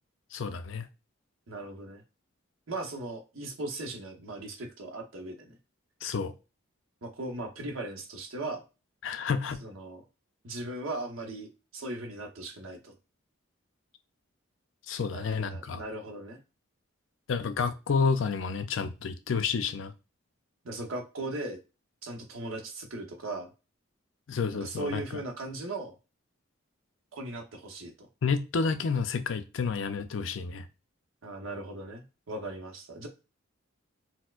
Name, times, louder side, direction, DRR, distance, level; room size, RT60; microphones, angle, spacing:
voice 1, 0.3-0.9 6.0-6.3 9.0-9.6 14.9-15.8 17.3-19.9 24.3-25.0 28.2-30.7, left 5 dB, 70° left, 0.4 m, -30 dB
voice 2, 1.5-2.0 2.7-5.6 7.0-8.6 9.6-10.0 10.4-12.9 15.1-16.4 20.6-21.6 22.0-23.5 24.5-26.0 27.1-28.1 31.2-33.1, right 2 dB, 80° right, 0.8 m, -38 dB
4.3 x 2.1 x 2.3 m
head